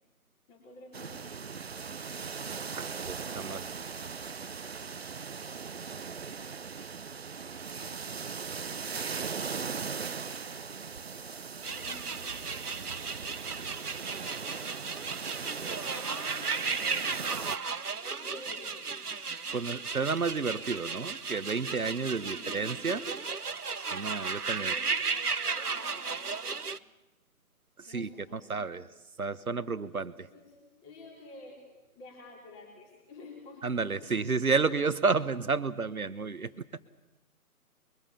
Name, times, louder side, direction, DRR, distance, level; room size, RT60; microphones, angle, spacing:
voice 1, 0.5-1.4 11.7-12.3 15.9-17.6 18.2-18.9 22.2-22.6 24.5-26.7 27.8-28.7 30.2-31.7 31.9-34.2 35.1-35.3 36.3-36.4, left 2 dB, 15° left, 0 dB, 4.2 m, -50 dB
sound 1, 0.9-17.6, right 5 dB, 45° right, 0.7 m, -39 dB
voice 2, 2.8-3.7 19.5-23.1 23.8-24.7 27.8-28.9 29.2-30.3 33.6-36.5, right 4 dB, 70° right, 12 dB, 1.3 m, -31 dB
sound 2, 11.6-26.8, right 5 dB, 90° right, 1.0 m, -35 dB
24.0 x 23.0 x 7.3 m, 1.1 s
figure-of-eight pair, 150°, 44 cm